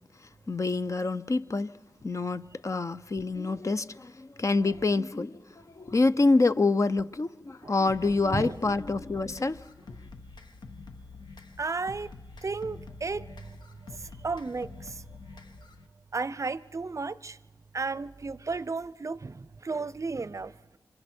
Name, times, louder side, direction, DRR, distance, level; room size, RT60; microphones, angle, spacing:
voice 1, 0.2-1.7 2.0-9.6, left 3 dB, 45° left, 0.6 m, -27 dB
sound 1, 7.9-15.9, left 3 dB, 75° left, 1.1 m, -47 dB
voice 2, 11.6-12.1 12.4-13.3 14.2-14.9 16.1-17.4 17.7-20.5, right 4 dB, 45° right, 0.6 m, -33 dB
26.0 x 26.0 x 4.4 m
cardioid pair, 45°, 7 cm